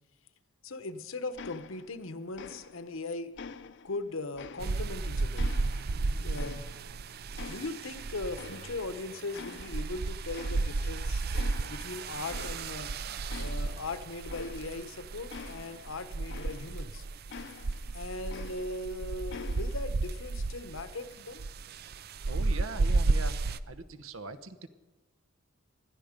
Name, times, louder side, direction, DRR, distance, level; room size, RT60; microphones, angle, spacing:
voice 1, 0.6-3.3 3.8-5.5 6.1-6.7 7.5-11.2 11.7-12.9 13.4-17.0 17.9-21.5, left 2 dB, 80° left, 11 dB, 1.0 m, -39 dB
sound 1, 1.4-2.1 2.3-3.0 3.4-5.0 5.4-7.0 7.4-9.0 9.3-10.0 10.3-11.0 11.3-11.9 12.3-12.9 13.3-16.9 17.3-18.9 19.3-19.9, left 5 dB, 60° left, 0.6 m, -47 dB
sound 2, 4.6-23.6, right 3 dB, 50° right, 0.5 m, -33 dB
voice 2, 22.3-23.4 23.7-24.7, right 3 dB, 80° right, 12 dB, 1.0 m, -41 dB
20.5 x 12.5 x 5.2 m, 1.2 s
head